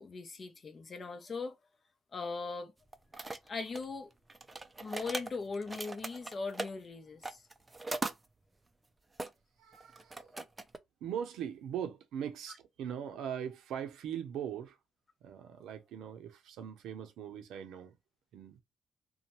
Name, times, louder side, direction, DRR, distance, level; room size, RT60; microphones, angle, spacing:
voice 1, 0.0-1.6 2.1-2.7 3.4-4.1 4.8-7.4, left 4 dB, 40° left, 0.7 m, -39 dB
sound 1, 2.9-3.8 4.3-6.7 7.2-8.1 9.2-9.3 9.7-10.8, right 2 dB, 20° right, 0.4 m, -39 dB
voice 2, 9.6-10.3 11.0-14.8 15.2-18.0 18.3-18.6, right 9 dB, 85° right, 0.7 m, -40 dB
2.7 x 2.2 x 3.0 m
cardioid pair, 90°, 0 cm